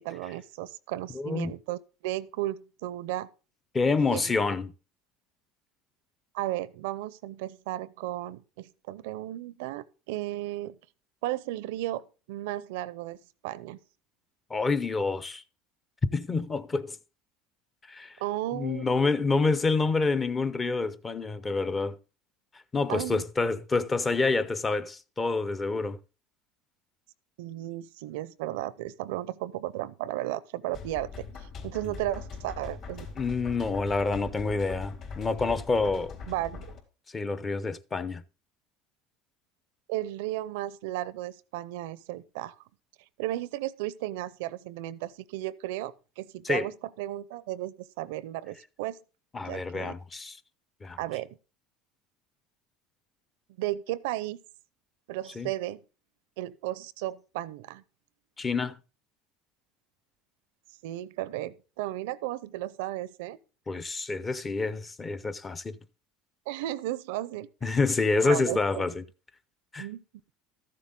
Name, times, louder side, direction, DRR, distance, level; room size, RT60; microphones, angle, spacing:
voice 1, 0.0-3.3 4.1-4.6 6.3-10.8 11.2-13.2 13.4-13.8 18.2-18.9 22.9-23.2 27.4-33.1 36.3-36.7 39.9-42.6 43.2-46.7 47.0-49.0 49.4-49.9 51.0-51.4 53.6-54.4 55.1-55.8 56.4-57.8 60.8-63.4 66.5-67.8 68.2-68.9 69.8-70.0, right 15 dB, 80° right, 0.6 m, -34 dB
voice 2, 1.1-1.5 3.7-4.7 14.5-15.4 16.1-17.0 17.9-18.2 18.5-22.0 22.7-26.0 33.2-36.1 37.1-38.2 46.4-46.7 49.3-50.4 50.8-51.0 55.4-55.5 58.4-58.8 63.7-65.8 67.6-69.0 69.7-69.9, left 3 dB, 20° left, 0.7 m, -27 dB
sound 1, 30.7-36.8, left 5 dB, 50° left, 3.7 m, -41 dB
13.0 x 7.6 x 3.8 m
supercardioid pair, 120°, 0 cm